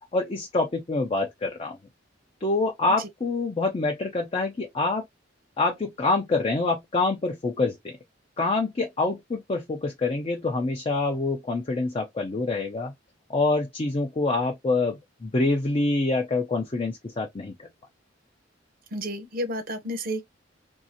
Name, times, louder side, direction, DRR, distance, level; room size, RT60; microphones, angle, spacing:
voice 1, 0.1-1.8 2.4-5.0 5.6-8.0 8.4-12.9 13.3-17.7, left 3 dB, 30° left, 0.5 m, -26 dB
voice 2, 18.9-20.2, equal, 50° right, 0.7 m, -31 dB
2.7 x 2.4 x 2.6 m
head